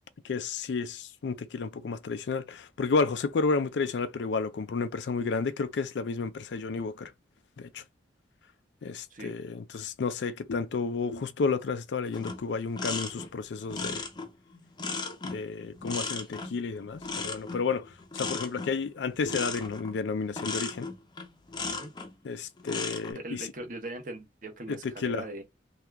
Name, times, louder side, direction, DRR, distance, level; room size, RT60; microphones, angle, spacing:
voice 1, 0.2-7.1 7.6-7.8 8.8-14.0 15.2-20.9 22.2-23.5 24.7-25.2, left 4 dB, 75° left, 0.4 m, -31 dB
sound 1, 12.1-22.1 22.6-23.1, left 4 dB, 25° left, 0.6 m, -36 dB
voice 2, 23.1-25.4, right 2 dB, 45° right, 1.0 m, -40 dB
2.8 x 2.4 x 3.4 m
head